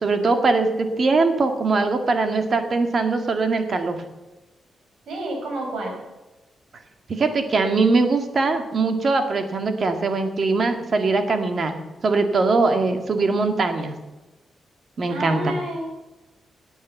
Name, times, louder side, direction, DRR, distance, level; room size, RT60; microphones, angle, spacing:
voice 1, 0.0-4.0 7.1-11.7 12.0-14.0 15.0-15.6, right 3 dB, 45° right, 6 dB, 1.9 m, -21 dB
voice 2, 5.1-6.0 15.1-15.9, right 1 dB, 85° right, 0 dB, 5.9 m, -29 dB
17.5 x 9.2 x 7.2 m, 1.1 s
wide cardioid pair, 145°, 0 cm